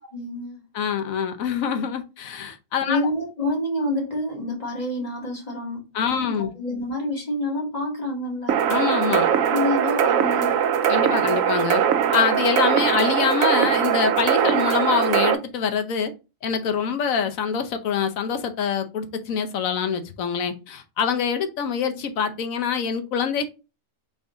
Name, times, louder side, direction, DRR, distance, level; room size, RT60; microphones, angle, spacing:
voice 1, 0.1-0.6 2.9-5.9 6.2-8.6 9.1-10.6 21.9-22.0, left 1 dB, 30° left, 2.0 m, -28 dB
voice 2, 0.7-3.0 5.9-6.5 8.7-9.3 10.9-11.8 12.1-16.1 16.4-23.5, left 7 dB, 90° left, 1.2 m, -25 dB
sound 1, 8.5-15.3, right 8 dB, 85° right, 1.0 m, -21 dB
4.0 x 3.5 x 3.8 m
omnidirectional pair, 1.4 m